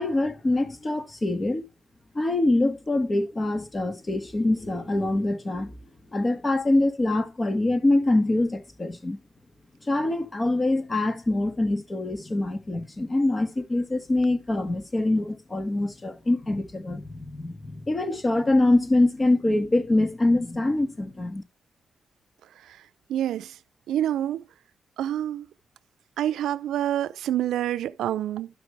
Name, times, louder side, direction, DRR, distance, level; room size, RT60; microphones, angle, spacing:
voice 1, 0.0-1.6 2.1-5.8 6.1-9.2 9.8-21.4, left 2 dB, 35° left, 2.0 m, -24 dB
voice 2, 23.1-23.5 23.9-24.4 25.0-25.5 26.2-28.5, right 11 dB, 90° right, 0.4 m, -27 dB
12.0 x 5.9 x 3.4 m
cardioid pair, 60°, 0 cm